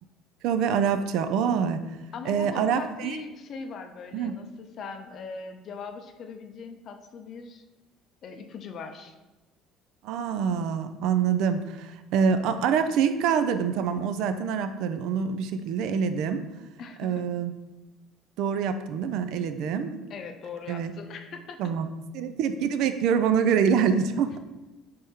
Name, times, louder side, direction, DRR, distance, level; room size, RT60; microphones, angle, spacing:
voice 1, 0.4-1.8 2.3-3.2 4.1-4.3 10.0-16.4 17.0-17.5 18.4-20.0 20.7-20.9 21.6-21.9 22.1-24.4, right 7 dB, 70° right, 10 dB, 0.3 m, -25 dB
voice 2, 2.1-7.6 8.2-9.1 16.8-17.3 20.1-21.7, left 5 dB, 50° left, 6 dB, 0.5 m, -40 dB
3.5 x 3.4 x 4.2 m, 1.1 s
cardioid pair, 110°, 0 cm